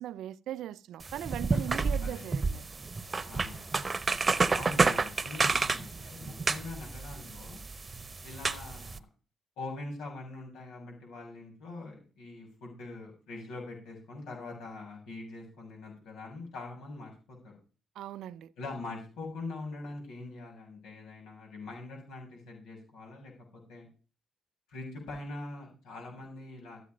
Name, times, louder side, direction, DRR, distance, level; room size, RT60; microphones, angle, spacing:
voice 1, 0.0-2.6 18.0-18.5, right 12 dB, 80° right, 0.5 m, -39 dB
sound 1, 1.0-9.0, right 4 dB, 25° right, 0.9 m, -30 dB
voice 2, 1.7-2.2 3.3-3.7 4.5-7.6 8.2-9.0 9.6-17.5 18.6-23.9 24.7-26.8, left 2 dB, 90° left, 7.2 m, -43 dB
14.0 x 8.4 x 5.2 m
cardioid pair, 90°, 0 cm